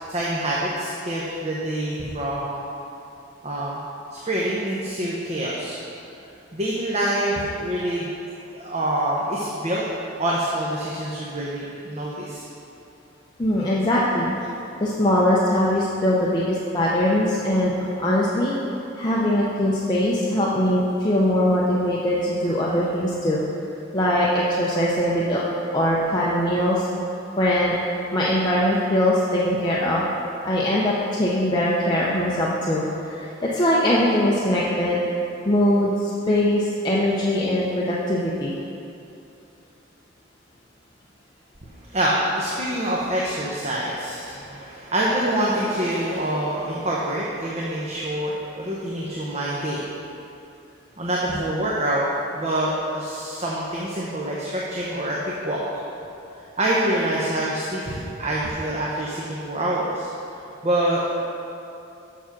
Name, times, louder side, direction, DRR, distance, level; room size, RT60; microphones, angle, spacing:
voice 1, 0.1-2.6 3.4-3.8 4.1-5.8 6.5-8.1 8.5-9.8 10.2-12.4 13.8-13.9 41.9-49.9 51.0-52.1 52.3-55.8 56.6-60.1 60.6-61.1, right 1 dB, 35° right, -5 dB, 0.8 m, -26 dB
voice 2, 13.4-14.3 14.8-18.5 19.0-23.4 23.9-25.5 25.7-26.8 27.4-27.7 28.1-30.0 30.4-35.0 35.4-38.5, left 1 dB, 20° left, -6 dB, 0.7 m, -21 dB
7.1 x 6.1 x 5.9 m, 2.7 s
head